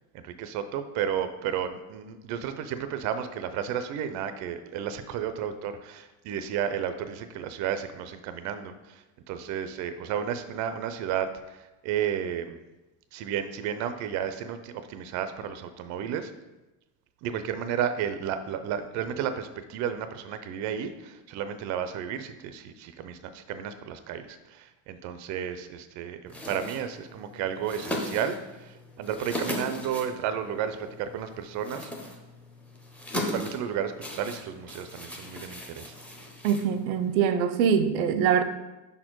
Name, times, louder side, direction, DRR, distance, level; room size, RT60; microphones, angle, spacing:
voice 1, 0.1-12.6 13.1-16.3 17.2-31.9 33.1-35.9, right 8 dB, 45° right, 10 dB, 0.5 m, -32 dB
sound 1, 26.3-37.2, left 1 dB, 5° left, 0.6 m, -38 dB
voice 2, 36.4-38.4, right 7 dB, 85° right, 10 dB, 0.7 m, -23 dB
5.4 x 4.4 x 4.5 m, 1.0 s
supercardioid pair, 140°, 42 cm